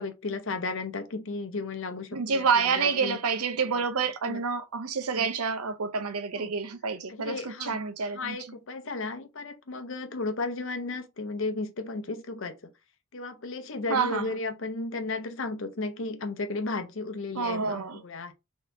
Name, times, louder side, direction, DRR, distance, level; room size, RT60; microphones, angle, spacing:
voice 1, 0.0-3.2 4.2-4.4 6.3-6.5 7.1-7.8 8.1-12.7 13.1-18.3, left 3 dB, 60° left, 0.7 m, -34 dB
voice 2, 2.1-8.4 13.9-14.3 17.3-18.0, right 5 dB, 85° right, 0.6 m, -28 dB
4.2 x 2.9 x 2.6 m
head